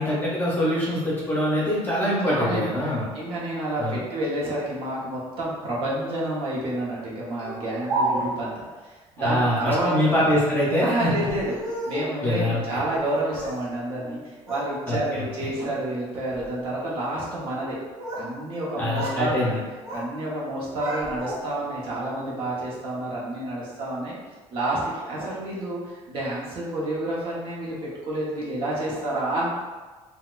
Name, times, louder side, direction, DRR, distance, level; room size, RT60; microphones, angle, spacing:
voice 1, 0.0-3.0 3.8-4.0 9.2-11.1 12.2-12.8 14.9-15.5 18.8-19.6, left 1 dB, 15° left, -6 dB, 0.7 m, -24 dB
voice 2, 2.3-8.5 8.8-9.9 10.8-11.6 11.9-17.8 18.1-19.5 19.9-24.2 24.5-25.8 26.1-29.5, right 1 dB, 55° right, -6 dB, 1.0 m, -29 dB
Speech, 7.4-8.5 9.7-10.1 11.1-12.2 12.9-13.7 14.0-14.7 15.1-15.5 16.1-16.5 17.6-18.3 18.6-19.2 19.5-20.1 20.4-21.7, right 1 dB, 30° right, 0.7 m, -32 dB
4.0 x 2.2 x 2.4 m, 1.3 s
cardioid pair, 170°, 11 cm